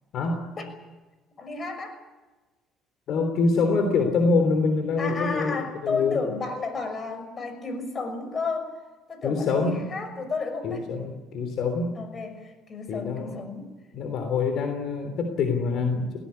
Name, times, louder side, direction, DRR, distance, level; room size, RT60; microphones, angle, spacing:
voice 1, 0.1-0.5 3.1-6.2 9.2-9.9 10.6-12.0 12.9-13.4 13.9-16.2, left 4 dB, 65° left, 6 dB, 3.4 m, -25 dB
voice 2, 1.4-2.0 5.0-8.8 9.1-10.8 11.9-13.7, left 4 dB, 35° left, 8 dB, 6.1 m, -32 dB
19.0 x 19.0 x 9.8 m, 1.2 s
cardioid pair, 100°, 0 cm